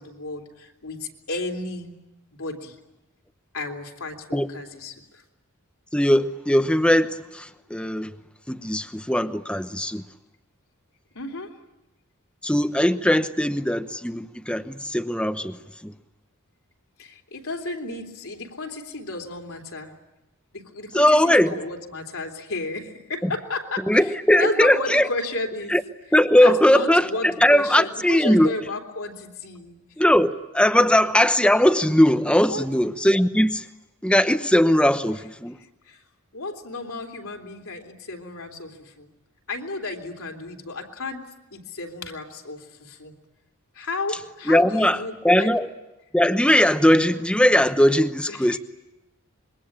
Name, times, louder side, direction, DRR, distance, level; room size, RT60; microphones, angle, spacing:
voice 1, 0.0-1.9 2.3-2.8 3.5-5.2 11.1-11.5 17.0-19.9 20.5-25.7 26.4-29.8 32.4-32.7 35.8-36.0 36.3-39.1 39.5-41.2 41.5-43.1 43.7-45.5 48.3-48.6, left 3 dB, 70° left, 2 dB, 3.3 m, -33 dB
voice 2, 5.9-8.1 8.5-10.0 12.4-15.9 20.9-21.6 23.2-23.3 23.9-25.1 25.7-25.8 26.1-28.5 30.0-33.7 34.0-35.6 44.5-45.0 45.2-45.7 46.1-48.6, left 1 dB, 5° left, 10 dB, 0.9 m, -19 dB
26.5 x 23.0 x 8.8 m, 1.0 s
head